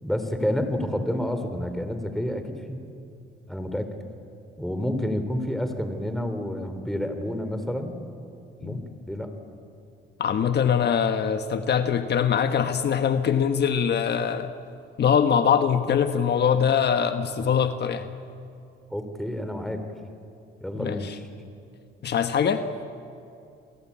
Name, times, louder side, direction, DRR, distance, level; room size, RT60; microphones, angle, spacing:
voice 1, 0.0-2.8 3.5-3.9 4.6-8.0 8.6-9.3 18.9-19.9 20.6-21.1, left 1 dB, ahead, 7 dB, 3.7 m, -29 dB
voice 2, 10.2-14.5 15.0-18.1 20.7-21.2 22.0-22.7, left 7 dB, 55° left, 8 dB, 1.4 m, -23 dB
30.0 x 22.5 x 8.7 m, 2.5 s
cardioid pair, 90°, 20 cm